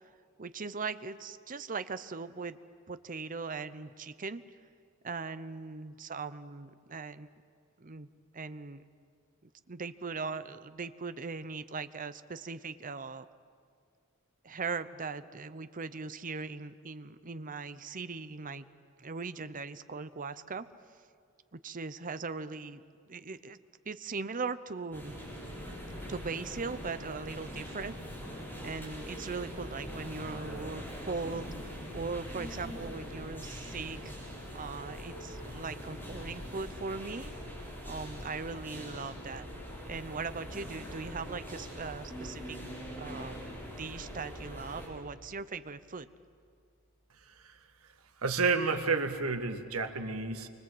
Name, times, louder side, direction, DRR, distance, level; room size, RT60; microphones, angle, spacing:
voice 1, 0.4-2.6 2.9-4.4 5.0-7.3 7.8-8.1 8.3-8.8 9.7-13.3 14.4-18.7 19.0-20.7 21.5-23.6 23.9-25.2 26.1-28.0 28.6-37.3 37.8-39.5 39.9-42.6 43.0-43.4 43.7-46.1, right 4 dB, 40° right, 13 dB, 0.8 m, -39 dB
sound 1, 24.9-44.9, equal, 10° left, 7.6 m, -43 dB
sound 2, 33.7-47.6, equal, 35° left, 3.4 m, -57 dB
voice 2, 47.3-47.6 48.2-50.5, right 4 dB, 85° right, 6 dB, 1.8 m, -30 dB
28.5 x 24.5 x 7.9 m, 2.2 s
head